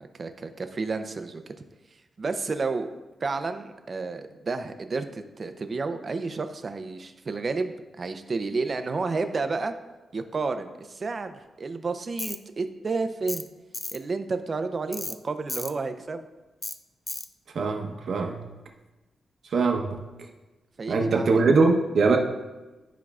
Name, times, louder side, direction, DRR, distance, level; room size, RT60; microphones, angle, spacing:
voice 1, 0.0-1.5 2.2-2.9 3.2-9.7 10.1-13.4 13.9-16.2 20.8-21.3, right 4 dB, 40° right, 8 dB, 0.6 m, -31 dB
Tools, 12.2-12.4 13.3-13.5 13.7-14.0 14.9-15.2 15.5-15.7 16.6-16.8 17.1-17.3, left 2 dB, 25° left, 0.4 m, -33 dB
voice 2, 17.5-18.4 19.5-20.0 20.9-22.2, right 3 dB, 65° right, 2 dB, 0.9 m, -22 dB
12.0 x 4.6 x 2.4 m, 1.1 s
cardioid pair, 95°, 0 cm